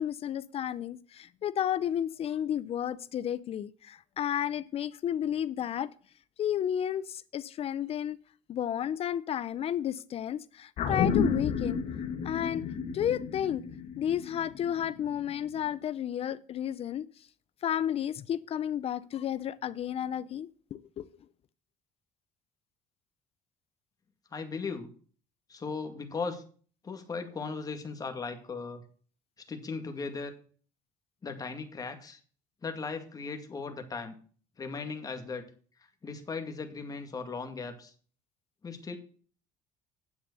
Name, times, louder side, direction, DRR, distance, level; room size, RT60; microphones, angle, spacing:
voice 1, 0.0-5.9 6.4-8.2 8.5-11.8 12.2-12.6 12.9-13.6 14.0-17.0 17.6-21.1, left 10 dB, 45° left, 0.6 m, -32 dB
sound 1, 10.8-15.4 15.7-15.8, left 6 dB, 65° left, 2.3 m, -32 dB
voice 2, 24.3-24.9 25.5-26.4 26.8-28.8 29.5-30.3 31.2-32.2 32.6-34.1 34.6-35.4 36.0-37.9 38.6-39.0, left 4 dB, 25° left, 2.2 m, -37 dB
9.8 x 7.6 x 6.8 m
cardioid pair, 120°, 14 cm